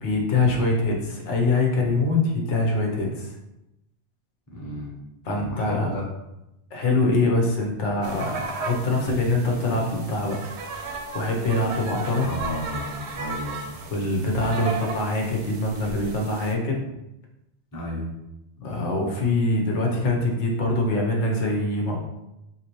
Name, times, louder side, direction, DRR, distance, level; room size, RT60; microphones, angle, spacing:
voice 1, 0.0-3.4 5.2-6.0 6.7-10.4 11.1-12.3 13.9-16.8 18.6-22.0, left 2 dB, 80° left, 0 dB, 1.1 m, -24 dB
voice 2, 4.5-4.9 5.4-6.0 12.2-13.9 17.7-18.1, left 1 dB, 20° left, -3 dB, 0.6 m, -33 dB
sound 1, 8.0-16.5, right 4 dB, 75° right, 0.8 m, -35 dB
3.7 x 2.7 x 2.9 m, 0.90 s
omnidirectional pair, 1.2 m